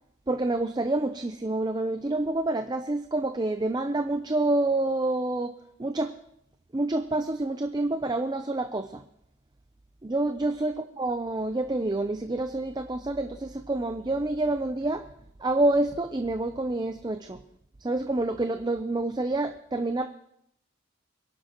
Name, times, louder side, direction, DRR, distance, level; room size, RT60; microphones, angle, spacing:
voice 1, 0.3-5.5 5.8-6.1 6.7-9.0 10.0-15.0 15.4-17.4 17.8-20.0, right 2 dB, 20° right, 7 dB, 0.5 m, -28 dB
25.0 x 11.5 x 3.0 m, 0.78 s
head